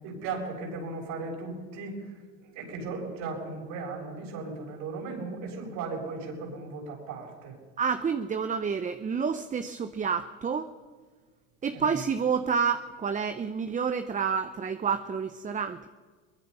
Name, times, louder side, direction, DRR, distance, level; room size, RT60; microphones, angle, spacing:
voice 1, 0.0-2.2 2.4-7.6 11.7-11.8, right 3 dB, 65° right, -2 dB, 7.7 m, -36 dB
voice 2, 7.8-10.7 11.6-15.9, right 6 dB, 25° right, 9 dB, 0.8 m, -29 dB
23.0 x 20.5 x 5.6 m, 1.5 s
hypercardioid pair, 85°, 34 cm